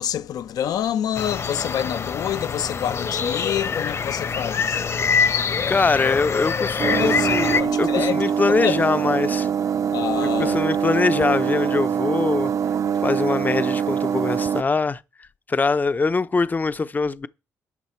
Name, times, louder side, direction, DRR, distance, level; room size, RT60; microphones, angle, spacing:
voice 1, 0.0-4.8 7.0-8.8 9.9-10.6, left 10 dB, 70° left, 0.6 m, -27 dB
sound 1, 1.1-7.6, left 5 dB, 45° left, 0.9 m, -24 dB
voice 2, 5.7-9.5 10.2-12.5 13.0-15.0 15.5-17.3, left 4 dB, 25° left, 0.6 m, -23 dB
sound 2, 6.8-14.6, right 7 dB, 55° right, 0.7 m, -23 dB
12.0 x 7.9 x 4.4 m
cardioid pair, 70°, 7 cm